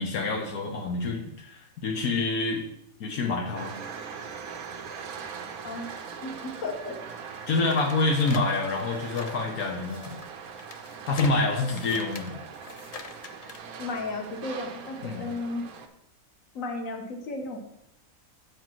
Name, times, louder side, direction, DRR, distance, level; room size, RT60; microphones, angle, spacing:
voice 1, 0.0-2.6 3.0-3.7 7.5-10.2 11.1-12.3 15.0-15.3, left 3 dB, 85° left, 1 dB, 1.5 m, -27 dB
sound 1, 3.5-15.9, right 6 dB, 80° right, 1.3 m, -41 dB
voice 2, 6.2-7.0 13.8-15.6 16.5-17.6, left 3 dB, 65° left, 3 dB, 1.7 m, -34 dB
sound 2, 7.7-13.7, left 4 dB, 50° left, 0.4 m, -43 dB
7.5 x 5.1 x 6.0 m, 0.76 s
omnidirectional pair, 1.5 m